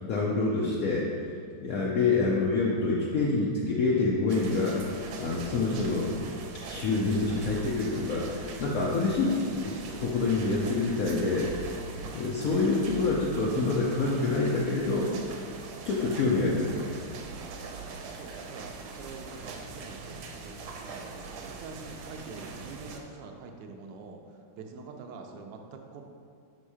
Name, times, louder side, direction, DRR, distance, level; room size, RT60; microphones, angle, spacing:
voice 1, 0.0-1.1 1.6-4.8 5.2-6.1 6.6-11.7 12.0-15.1 15.9-16.9, left 3 dB, 80° left, -4 dB, 0.7 m, -27 dB
sound 1, 4.3-23.0, right 4 dB, 85° right, 1.5 m, -42 dB
voice 2, 17.7-24.2 24.5-26.1, right 4 dB, 70° right, 3 dB, 1.1 m, -45 dB
5.4 x 4.4 x 4.8 m, 2.2 s
omnidirectional pair, 2.3 m